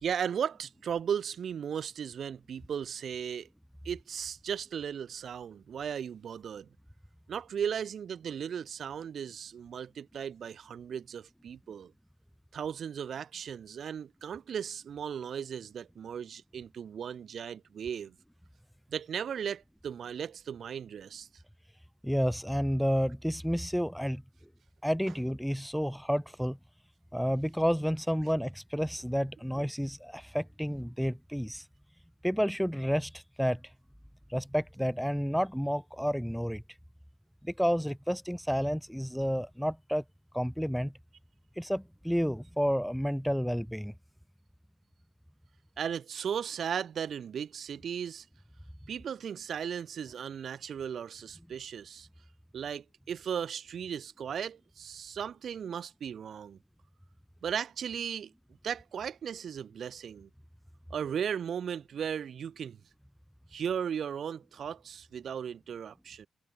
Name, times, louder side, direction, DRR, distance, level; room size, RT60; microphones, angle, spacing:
voice 1, 0.0-3.5 3.8-6.7 7.3-11.9 12.5-18.1 18.9-21.3 45.8-48.3 48.9-52.1 52.5-56.6 57.4-58.3 58.6-60.3 60.9-62.8 63.5-66.3, right 8 dB, 60° right, 2.8 m, -36 dB
voice 2, 22.0-24.2 24.8-26.6 27.1-31.6 32.2-33.6 34.3-36.6 37.4-40.0 40.3-40.9 41.6-43.9, equal, ahead, 1.3 m, -30 dB
wide cardioid pair, 130°, 0 cm